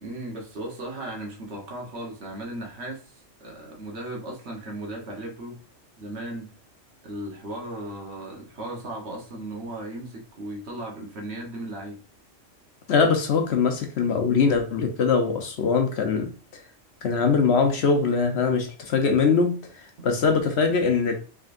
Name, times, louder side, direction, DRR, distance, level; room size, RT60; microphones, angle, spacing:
voice 1, 0.0-5.6 6.0-6.5 7.0-12.0 20.0-20.1, right 1 dB, 60° right, 1.3 m, -36 dB
voice 2, 12.9-16.3 17.0-21.1, left 5 dB, 65° left, 0.9 m, -22 dB
3.8 x 3.2 x 2.5 m
omnidirectional pair, 1.3 m